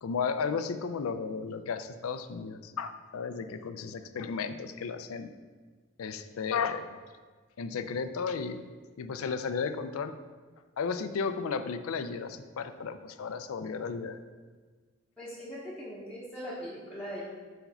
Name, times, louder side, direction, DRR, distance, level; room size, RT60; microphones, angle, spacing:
voice 1, 0.0-5.3 6.0-6.9 7.6-8.6 9.0-10.1 10.8-14.2, left 5 dB, 90° left, 10 dB, 0.4 m, -34 dB
voice 2, 15.2-17.2, equal, 5° left, -9 dB, 0.9 m, -40 dB
4.7 x 4.4 x 5.5 m, 1.4 s
head